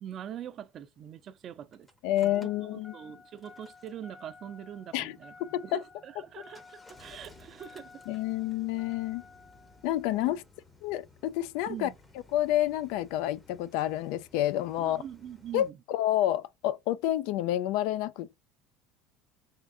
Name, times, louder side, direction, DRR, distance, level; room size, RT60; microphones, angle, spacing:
voice 1, 0.0-1.9 2.2-5.3 5.6-7.9 10.2-10.4 11.7-12.0 14.8-15.8, right 9 dB, 40° right, 0.5 m, -43 dB
Engine starting, 0.6-15.7, left 3 dB, 10° left, 0.7 m, -55 dB
voice 2, 2.0-2.9 4.9-5.8 8.1-9.2 9.8-10.4 10.8-11.9 12.3-15.0 15.5-18.4, left 13 dB, 70° left, 0.3 m, -29 dB
3.6 x 3.2 x 2.6 m
supercardioid pair, 120°, 0 cm